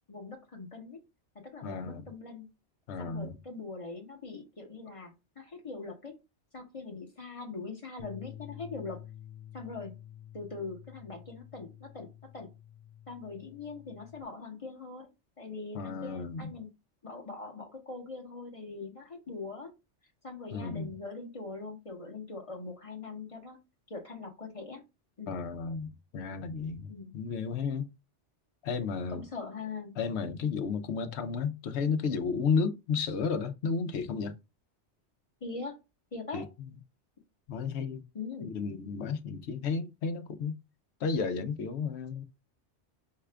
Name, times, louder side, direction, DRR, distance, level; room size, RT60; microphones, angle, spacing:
voice 1, 0.1-1.0 1.4-2.5 3.0-6.1 6.5-9.0 9.5-9.9 10.3-12.5 13.1-15.1 15.4-16.7 17.0-19.7 20.2-23.6 23.9-24.8 25.2-25.4 26.9-27.1 29.1-29.9 35.4-35.8 36.1-36.5 38.1-38.5, left 4 dB, 30° left, 0.9 m, -42 dB
voice 2, 1.6-2.1 2.9-3.4 15.7-16.5 20.5-20.9 25.3-27.9 28.6-29.3 30.0-34.3 36.3-36.7 37.5-38.0 38.4-40.5 41.0-42.2, left 5 dB, 70° left, 0.9 m, -33 dB
sound 1, 8.0-14.2, left 11 dB, 50° left, 0.4 m, -49 dB
5.7 x 2.4 x 3.3 m
omnidirectional pair, 1.2 m